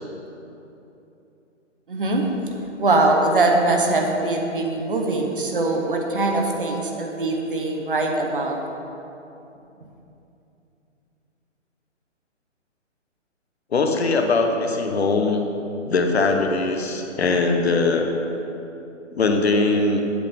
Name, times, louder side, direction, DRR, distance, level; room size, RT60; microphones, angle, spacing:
voice 1, 1.9-2.3 2.8-8.6, right 2 dB, 45° right, 2 dB, 0.8 m, -22 dB
voice 2, 13.7-15.5 15.9-18.0 19.1-20.0, left 3 dB, 55° left, 3 dB, 0.9 m, -21 dB
8.1 x 7.5 x 3.5 m, 2.9 s
hypercardioid pair, 175°, 37 cm